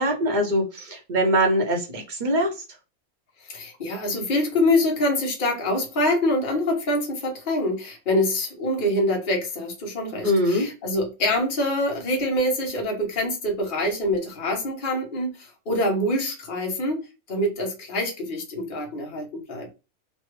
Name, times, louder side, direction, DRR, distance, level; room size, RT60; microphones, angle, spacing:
voice 1, 0.0-2.6 10.2-10.7, equal, 40° right, 0.8 m, -23 dB
voice 2, 3.5-17.0 17.3-19.7, left 1 dB, 40° left, 1.0 m, -25 dB
3.2 x 2.2 x 3.0 m
omnidirectional pair, 1.4 m